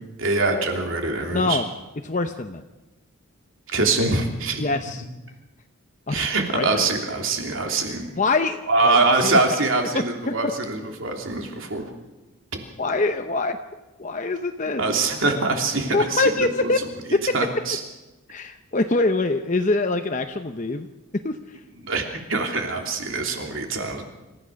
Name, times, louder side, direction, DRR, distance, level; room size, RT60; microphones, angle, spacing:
voice 1, 0.2-1.6 3.7-4.7 6.1-8.1 8.7-11.9 14.8-16.7 17.3-17.8 21.8-24.0, right 3 dB, 65° right, 3 dB, 3.2 m, -24 dB
voice 2, 1.3-1.7 2.0-2.6 4.6-5.0 6.1-6.3 6.5-6.9 8.2-9.4 9.9-10.5 12.8-13.6 14.0-14.8 15.9-16.8 17.1-17.2 18.3-20.9 21.1-21.4, left 3 dB, 35° left, 6 dB, 0.8 m, -24 dB
27.0 x 15.0 x 6.5 m, 1.1 s
head